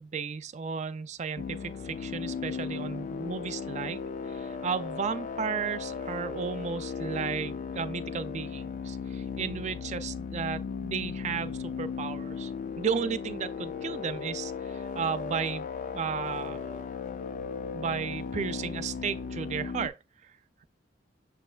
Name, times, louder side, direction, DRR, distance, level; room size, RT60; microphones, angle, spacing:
voice 1, 0.0-12.5 12.8-15.7 15.9-16.7 17.7-19.9 20.2-20.3, right 6 dB, 40° right, 0.3 m, -34 dB
sound 1, 1.4-19.9, left 5 dB, 45° left, 0.3 m, -36 dB
6.4 x 3.1 x 2.3 m
head